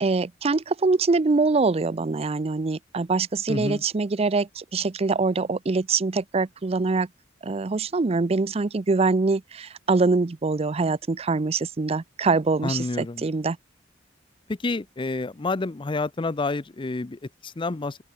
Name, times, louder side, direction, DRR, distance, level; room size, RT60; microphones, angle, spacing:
voice 1, 0.0-7.1 7.4-13.6, right 3 dB, 35° right, 0.5 m, -24 dB
voice 2, 3.5-3.8 12.6-13.2 14.6-18.0, left 3 dB, 25° left, 0.5 m, -29 dB
open air
head